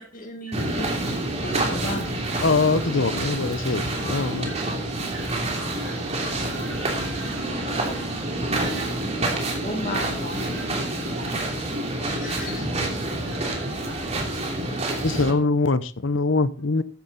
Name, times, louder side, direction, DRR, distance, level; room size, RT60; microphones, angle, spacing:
voice 1, 0.0-2.3 9.6-10.7 11.4-11.6 12.1-12.7, left 1 dB, 45° left, 2.0 m, -35 dB
sound 1, 0.5-15.3, right 2 dB, 35° right, 3.0 m, -28 dB
voice 2, 2.4-4.5 12.0-12.1 15.0-16.8, left 3 dB, 75° left, 0.9 m, -23 dB
voice 3, 3.9-8.9 9.9-11.4 12.1-14.3, right 1 dB, 55° right, 4.8 m, -41 dB
13.5 x 10.0 x 4.1 m
head